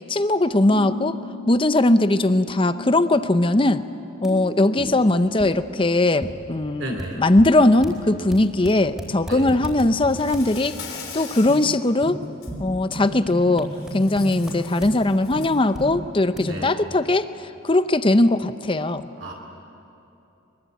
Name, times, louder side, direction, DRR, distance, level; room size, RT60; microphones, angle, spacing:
voice 1, 0.1-1.2 1.5-3.8 4.2-10.8 11.1-12.2 12.6-19.0, left 2 dB, 25° left, 12 dB, 0.7 m, -20 dB
sound 1, 0.7-3.9 4.2-4.9 5.4-5.5 6.2-6.3 7.0-7.1 7.4-7.5 7.8-10.4 11.5-11.6 12.0-12.1 12.5-13.0 13.3-14.9 15.3-15.4 15.7-15.9 16.4-16.5, equal, 5° right, 3.9 m, -35 dB
voice 2, 6.8-7.2 9.3-9.5 16.5-16.7 19.2-19.3, right 1 dB, 60° right, 0 dB, 2.9 m, -33 dB
Insect, 10.0-11.7 12.2-12.5 13.7-15.6, left 6 dB, 90° left, 4.1 m, -40 dB
24.0 x 22.5 x 8.4 m, 2.8 s
head